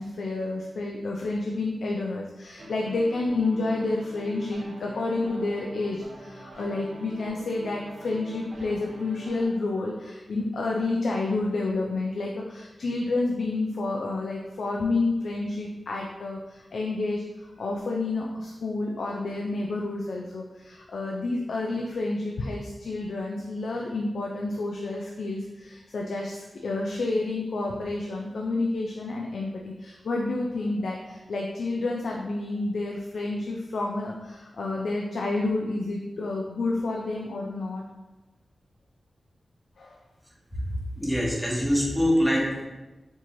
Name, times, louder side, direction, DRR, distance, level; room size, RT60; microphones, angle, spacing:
voice 1, 0.0-37.8 39.8-40.0, left 2 dB, 85° left, -1 dB, 0.3 m, -29 dB
sound 1, 2.6-9.5, equal, 75° right, 0.7 m, -44 dB
voice 2, 41.0-42.6, equal, 5° left, -4 dB, 0.9 m, -24 dB
4.4 x 2.9 x 2.5 m, 1.1 s
wide cardioid pair, 95°, 0 cm